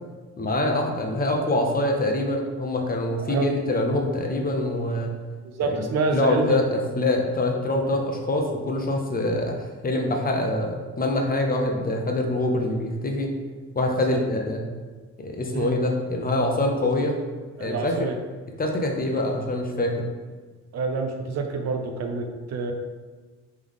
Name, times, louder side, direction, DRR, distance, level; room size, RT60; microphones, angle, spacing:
voice 1, 0.4-5.1 5.6-5.8 6.1-13.3 13.7-14.6 15.2-17.2 17.6-18.1 18.6-20.0, left 1 dB, 30° left, 2 dB, 0.6 m, -25 dB
voice 2, 3.2-3.5 5.4-6.7 13.9-14.2 15.5-15.7 17.6-18.1 20.7-22.7, right 4 dB, 60° right, 4 dB, 0.6 m, -27 dB
3.5 x 3.3 x 3.6 m, 1.3 s
cardioid pair, 90°, 30 cm